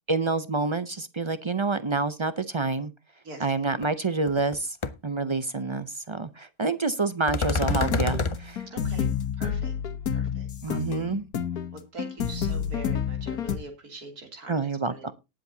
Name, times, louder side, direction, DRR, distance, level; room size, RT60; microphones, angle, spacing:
voice 1, 0.1-2.9 3.4-4.8 5.0-8.6 10.6-11.3 14.5-15.1, right 3 dB, 45° right, 13 dB, 0.3 m, -28 dB
sound 1, 3.8-3.9 4.3-4.5 4.8-4.9 7.3-8.3, left 4 dB, 40° left, 0.4 m, -26 dB
sound 2, 7.6-13.6, left 7 dB, 85° left, 1.6 m, -30 dB
voice 2, 8.7-9.1 9.4-9.7 10.1-10.8 11.9-15.1, right 3 dB, 90° right, 4 dB, 3.4 m, -43 dB
19.0 x 7.6 x 2.8 m, 0.26 s
omnidirectional pair, 1.5 m